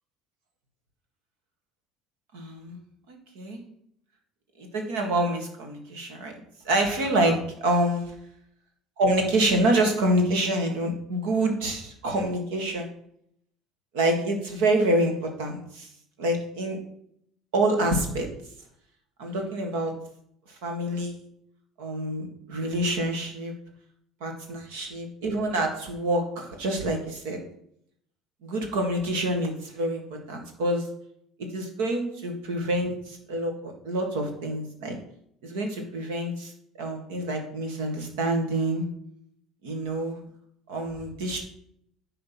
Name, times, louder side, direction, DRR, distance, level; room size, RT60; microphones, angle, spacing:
voice 1, 2.3-2.8 3.1-3.6 4.6-6.3 6.6-8.1 9.0-12.9 13.9-15.9 16.2-16.8 17.5-18.3 19.2-19.9 20.6-21.2 21.8-23.5 24.2-27.4 28.4-30.0 30.3-30.9 31.5-35.0 35.4-36.5 36.8-38.8 39.6-40.2 40.7-41.4, right 1 dB, 70° right, 4 dB, 1.7 m, -27 dB
10.0 x 3.9 x 5.9 m, 0.70 s
hypercardioid pair, 60°, 0 cm